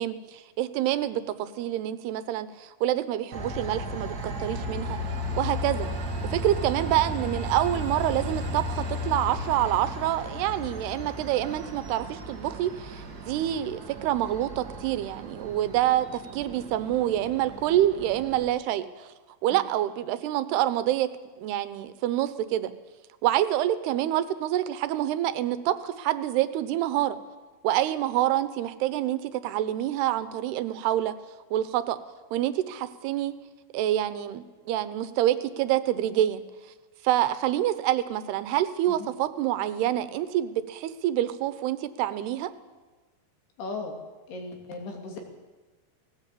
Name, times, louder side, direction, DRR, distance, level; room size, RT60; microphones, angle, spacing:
voice 1, 0.0-5.0 5.4-5.9 6.3-19.1 19.4-21.1 21.4-22.7 23.2-27.2 27.6-31.1 31.5-32.0 32.3-33.3 33.7-36.4 37.0-42.5, right 13 dB, 85° right, 12 dB, 3.0 m, -27 dB
Train, 3.3-18.5, equal, 40° right, 1.4 m, -35 dB
voice 2, 43.6-44.0 44.3-45.2, left 3 dB, 80° left, 2 dB, 4.9 m, -37 dB
18.5 x 17.0 x 8.5 m, 1.2 s
omnidirectional pair, 4.6 m